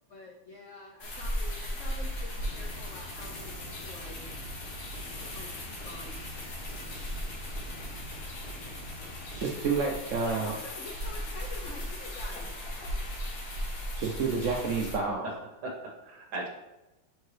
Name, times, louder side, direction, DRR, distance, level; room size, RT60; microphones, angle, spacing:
voice 1, 0.1-4.2 5.2-6.2 7.8-7.9 10.2-13.0, left 3 dB, 80° left, 0 dB, 0.6 m, -47 dB
sound 1, 1.0-15.0, equal, 55° left, 1.6 m, -37 dB
sound 2, 2.4-9.4, equal, 30° left, 2.3 m, -45 dB
voice 2, 3.6-3.9 15.2-15.3 15.6-16.5, right 2 dB, 60° right, 0 dB, 1.7 m, -39 dB
voice 3, 9.3-10.5 14.0-15.3, right 4 dB, 80° right, 0 dB, 0.6 m, -29 dB
6.7 x 4.6 x 3.2 m, 1.0 s
omnidirectional pair, 2.1 m